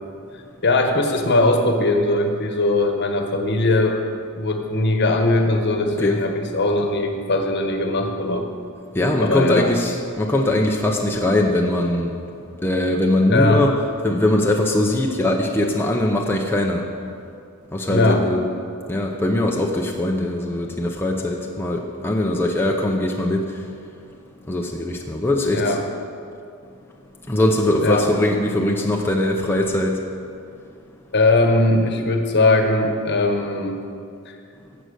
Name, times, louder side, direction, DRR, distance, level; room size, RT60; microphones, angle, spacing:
voice 1, 0.6-4.0 4.3-8.5 9.2-9.7 13.3-13.7 17.9-18.3 25.5-25.8 27.8-28.1 31.1-33.8 34.3-34.4, left 2 dB, 50° left, 4 dB, 1.1 m, -20 dB
voice 2, 8.9-12.1 12.6-13.7 14.0-16.9 17.7-18.4 18.9-23.5 24.5-25.8 27.3-30.0, left 1 dB, 10° left, 0 dB, 0.6 m, -21 dB
11.5 x 7.8 x 6.4 m, 2.5 s
head